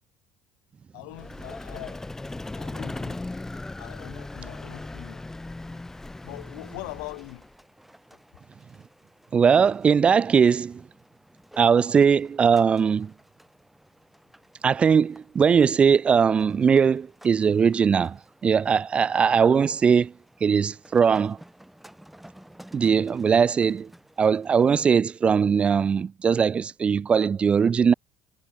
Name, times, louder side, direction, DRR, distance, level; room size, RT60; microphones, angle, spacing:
voice 1, 0.9-2.0 2.6-3.2 3.8-5.2 6.2-7.5, left 40 dB or more, 75° left, 4.1 m, -41 dB
Vehicle, 1.1-7.6, left 2 dB, 15° left, 2.4 m, -37 dB
sound 1, 5.4-24.9, right 1 dB, 5° right, 6.8 m, -54 dB
voice 2, 9.3-10.8 11.6-13.1 14.6-20.1 20.4-21.4 22.7-23.9 24.2-27.9, right 6 dB, 35° right, 0.5 m, -20 dB
hypercardioid pair, 65°, 3 cm